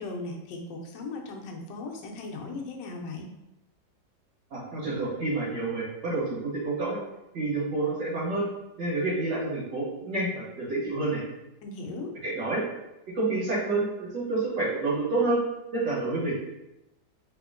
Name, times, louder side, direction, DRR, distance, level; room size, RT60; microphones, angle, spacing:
voice 1, 0.0-3.3 11.6-12.1, left 3 dB, 75° left, 1 dB, 1.2 m, -37 dB
voice 2, 4.5-7.0 7.3-8.5 8.8-11.2 12.2-12.6 13.1-15.4 15.7-16.3, right 2 dB, 70° right, -6 dB, 1.9 m, -28 dB
3.4 x 3.4 x 2.4 m, 0.90 s
omnidirectional pair, 2.1 m